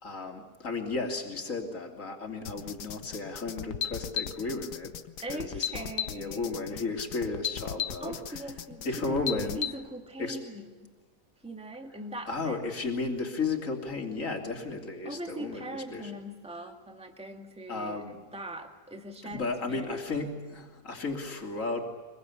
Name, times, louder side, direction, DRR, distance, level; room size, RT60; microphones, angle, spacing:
voice 1, 0.0-4.9 5.3-8.2 8.8-9.6 10.2-10.4 12.3-16.1 17.7-18.2 19.2-21.9, left 3 dB, 50° left, 2 dB, 3.4 m, -34 dB
sound 1, 2.5-9.7, left 8 dB, 80° left, 1.6 m, -35 dB
voice 2, 5.2-6.5 8.0-10.9 11.4-12.7 15.0-18.0 18.3-20.0, right 1 dB, 5° right, 3 dB, 2.0 m, -41 dB
25.0 x 22.5 x 8.5 m, 1.4 s
omnidirectional pair, 1.7 m